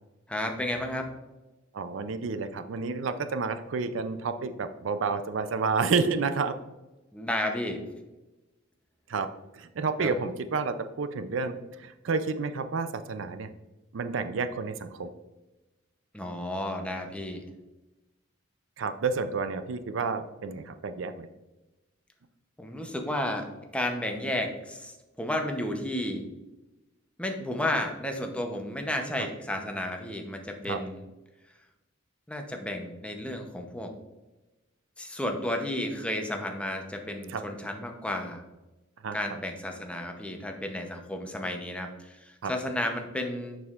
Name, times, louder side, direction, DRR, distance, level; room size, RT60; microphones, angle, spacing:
voice 1, 0.3-1.1 7.1-7.8 10.0-10.1 16.1-17.4 22.6-23.5 23.7-26.3 27.2-31.0 32.3-33.9 35.0-38.4 39.1-43.6, left 1 dB, 5° left, 3 dB, 0.7 m, -32 dB
voice 2, 1.7-6.5 9.1-9.3 9.5-13.5 13.9-15.1 18.8-21.3 30.7-30.8 37.3-37.4 39.0-39.2 42.4-42.5, right 4 dB, 70° right, 10 dB, 0.5 m, -30 dB
6.9 x 6.3 x 2.5 m, 1.1 s
head